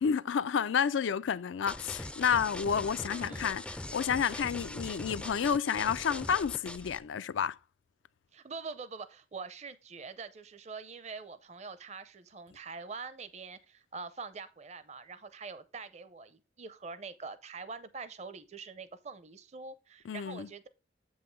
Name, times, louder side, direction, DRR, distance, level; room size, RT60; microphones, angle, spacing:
voice 1, 0.0-7.6 20.1-20.5, left 7 dB, 90° left, 0.4 m, -30 dB
sound 1, 1.7-7.0, left 1 dB, 5° left, 0.3 m, -41 dB
voice 2, 3.0-3.6 8.3-20.7, right 4 dB, 35° right, 0.6 m, -44 dB
7.6 x 5.5 x 3.2 m
head